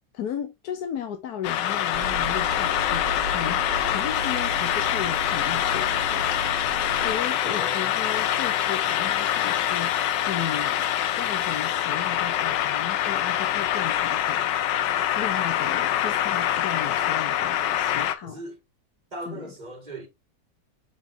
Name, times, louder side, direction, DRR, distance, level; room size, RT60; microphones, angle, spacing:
voice 1, 0.1-6.6 7.0-10.8 11.2-14.5 15.2-18.4 19.3-19.5, left 8 dB, 65° left, 1.2 m, -35 dB
sound 1, 1.4-18.1, left 11 dB, 90° left, 1.4 m, -25 dB
sound 2, 1.9-7.2, right 2 dB, 55° right, 1.6 m, -36 dB
voice 2, 7.4-8.0 18.2-18.6 19.1-20.1, right 1 dB, 25° right, 2.0 m, -38 dB
7.7 x 5.1 x 2.7 m
omnidirectional pair, 1.9 m